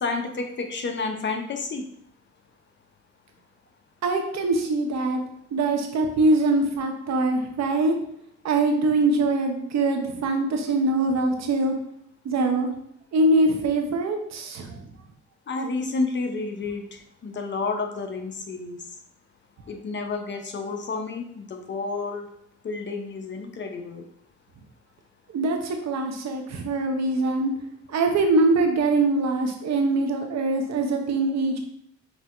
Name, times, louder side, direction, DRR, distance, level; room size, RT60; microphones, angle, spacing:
voice 1, 0.0-1.8 15.5-18.8 19.7-22.3 22.6-24.0, left 3 dB, 40° left, 4 dB, 0.7 m, -30 dB
voice 2, 4.0-5.2 5.5-8.0 8.4-11.7 12.2-12.7 13.1-14.9 25.3-27.5 27.9-31.6, right 2 dB, 60° right, 4 dB, 0.8 m, -23 dB
6.1 x 2.7 x 2.5 m, 0.72 s
cardioid pair, 90°, 30 cm